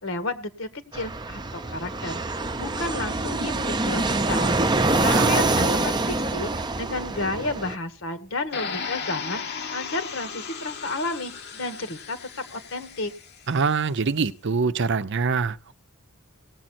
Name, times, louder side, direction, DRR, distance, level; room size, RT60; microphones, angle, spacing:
voice 1, 0.0-4.5 5.0-13.1, left 2 dB, 70° left, 1.7 m, -32 dB
Fixed-wing aircraft airplane, 0.9-7.7, right 2 dB, 20° right, 0.7 m, -25 dB
sound 1, 8.5-13.5, left 6 dB, 50° left, 1.1 m, -36 dB
voice 2, 13.5-15.8, right 5 dB, 55° right, 0.6 m, -24 dB
19.0 x 7.6 x 4.3 m
head